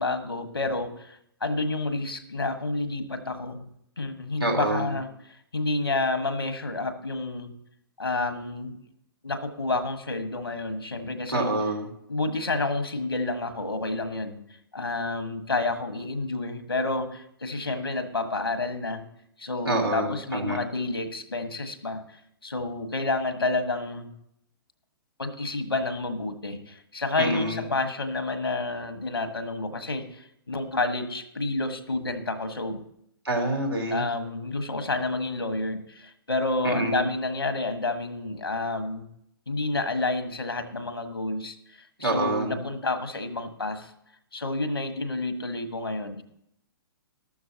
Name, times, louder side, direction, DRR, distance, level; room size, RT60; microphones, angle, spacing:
voice 1, 0.0-3.7 4.0-7.5 8.0-8.8 9.2-11.5 12.1-14.4 14.7-19.0 19.4-24.1 25.2-32.8 33.9-39.1 39.5-43.9 44.3-46.2, left 2 dB, 80° left, 8 dB, 1.6 m, -29 dB
voice 2, 4.4-4.9 11.3-11.9 19.6-20.6 27.2-27.6 33.2-34.0 36.6-37.1 42.0-42.6, right 1 dB, 90° right, -1 dB, 3.4 m, -27 dB
14.0 x 12.5 x 2.9 m, 0.73 s
figure-of-eight pair, 115°, 12 cm